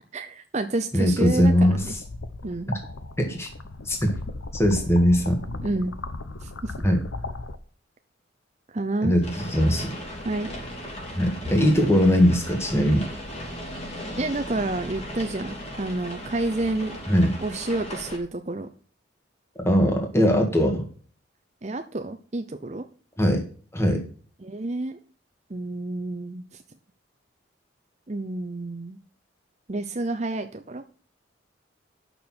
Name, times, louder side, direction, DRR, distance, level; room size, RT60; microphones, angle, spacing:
voice 1, 0.1-1.9 2.4-2.7 5.6-5.9 6.4-6.9 8.7-9.1 10.2-10.5 14.2-17.0 17.4-18.7 21.6-22.9 24.4-25.0 25.5-26.6 28.1-29.0 29.7-30.8, right 2 dB, 35° right, 8 dB, 0.7 m, -29 dB
voice 2, 0.9-2.0 2.7-2.8 3.2-3.5 3.9-4.2 4.5-5.4 6.8-7.0 9.0-10.0 11.1-13.1 17.1-17.3 19.6-20.9 23.2-23.4 23.7-24.1, equal, 15° left, 3 dB, 1.8 m, -20 dB
sound 1, 1.4-7.6, left 2 dB, 85° left, 1.0 m, -36 dB
sound 2, 9.2-18.2, left 1 dB, 30° left, 2.8 m, -37 dB
9.1 x 6.8 x 6.1 m, 0.42 s
head